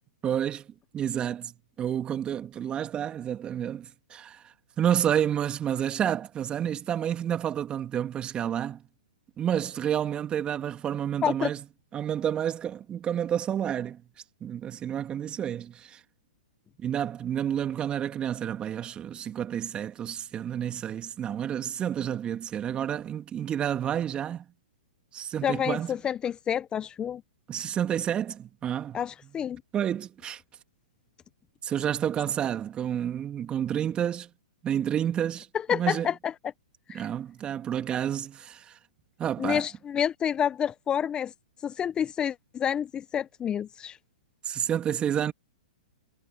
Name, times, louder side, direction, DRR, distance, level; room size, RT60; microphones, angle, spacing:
voice 1, 0.2-0.7 0.9-8.8 9.4-11.6 11.9-14.0 14.4-16.0 16.8-24.4 25.1-25.9 27.5-29.0 29.7-30.4 31.6-34.3 34.6-36.1 36.9-38.7 39.2-39.6 44.4-45.3, right 9 dB, 20° right, 2.4 m, -30 dB
voice 2, 25.4-27.2 28.9-29.6 35.7-36.3 36.9-37.0 39.4-41.3 41.6-44.0, left 8 dB, 20° left, 0.8 m, -28 dB
hypercardioid pair, 125°, 5 cm